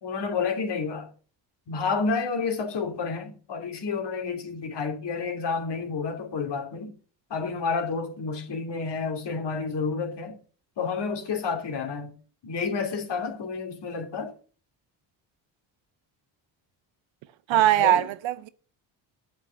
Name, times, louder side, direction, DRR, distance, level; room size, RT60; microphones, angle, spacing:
voice 1, 0.0-1.1 1.7-7.0 7.3-10.4 10.8-12.1 12.4-14.3 17.5-18.1, left 5 dB, 60° left, 2.9 m, -30 dB
voice 2, 17.5-18.5, right 13 dB, 75° right, 0.8 m, -21 dB
8.3 x 7.5 x 7.6 m
supercardioid pair, 65°, 47 cm